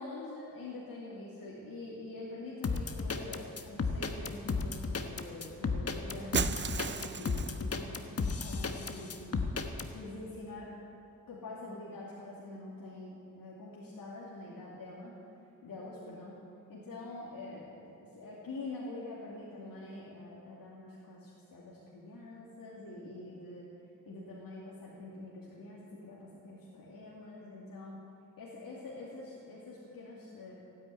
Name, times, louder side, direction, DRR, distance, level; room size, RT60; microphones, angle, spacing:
voice 1, 0.0-9.4 9.9-10.7 11.3-15.2 15.6-16.4 16.7-23.7 24.1-28.0 28.4-30.5, left 2 dB, 70° left, -5 dB, 2.6 m, -45 dB
sound 1, 2.6-9.9, left 4 dB, 40° left, 1.3 m, -33 dB
Shatter, 6.3-7.7, right 7 dB, 35° right, 0.5 m, -34 dB
16.0 x 9.3 x 9.4 m, 2.7 s
cardioid pair, 75°, 35 cm